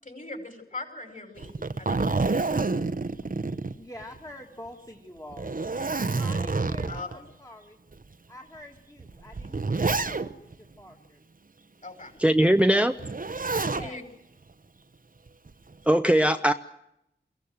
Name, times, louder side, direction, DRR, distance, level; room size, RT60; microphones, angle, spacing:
voice 1, 0.0-2.5 6.9-7.2 11.8-12.1 13.7-14.0 16.1-16.2, left 2 dB, 40° left, 5.4 m, -41 dB
Zipper (clothing), 1.4-4.3 4.7-4.8 5.3-7.2 7.9-8.0 9.0-10.5 13.0-13.9 15.3-15.7, right 3 dB, 45° right, 0.9 m, -28 dB
voice 2, 3.8-5.6 6.0-7.8 8.3-10.5 10.8-11.2 12.4-12.9 13.6-14.0, left 1 dB, 15° left, 2.1 m, -46 dB
voice 3, 12.2-12.9 15.9-16.5, right 1 dB, 5° right, 0.8 m, -20 dB
22.5 x 16.0 x 9.4 m
cardioid pair, 45°, 20 cm